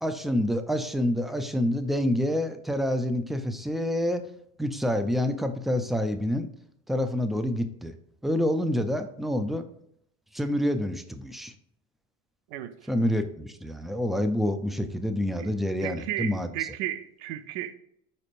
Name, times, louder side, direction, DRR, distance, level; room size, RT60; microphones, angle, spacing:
voice 1, 0.0-4.2 4.6-6.5 6.9-7.9 8.2-9.7 10.3-11.5 12.9-16.5, left 1 dB, ahead, 0.4 m, -27 dB
voice 2, 15.8-17.7, right 12 dB, 80° right, 0.6 m, -34 dB
5.0 x 4.2 x 2.5 m
supercardioid pair, 85°, 37 cm